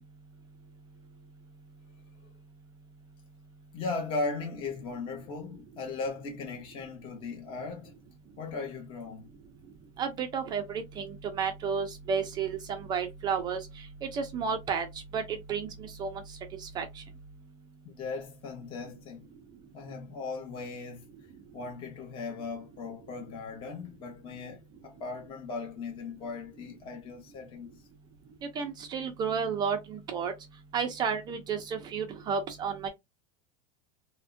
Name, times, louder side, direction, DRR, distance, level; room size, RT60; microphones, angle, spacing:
voice 1, 3.7-7.9 8.4-9.3 17.8-19.3 19.7-21.1 21.5-27.8, left 3 dB, 25° left, 0.8 m, -38 dB
voice 2, 10.0-13.6 14.1-14.9 15.1-15.2 15.5-16.2 16.6-17.0 28.6-30.3 30.7-32.9, right 6 dB, 20° right, 0.4 m, -32 dB
3.3 x 2.1 x 2.5 m
supercardioid pair, 165°, 19 cm